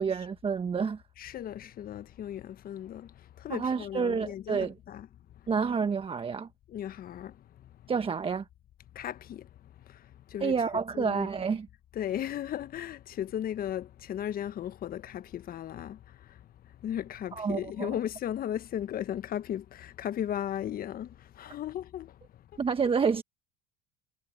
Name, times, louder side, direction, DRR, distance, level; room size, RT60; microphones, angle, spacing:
voice 1, 0.0-1.0 3.5-4.7 5.5-6.5 7.9-8.4 10.4-11.7 17.3-17.9 22.6-23.2, right 5 dB, 25° right, 1.3 m, -29 dB
voice 2, 1.2-5.1 5.3-5.5 6.7-7.9 8.9-11.3 11.9-22.6, left 10 dB, 45° left, 1.3 m, -37 dB
hypercardioid pair, 80°, 21 cm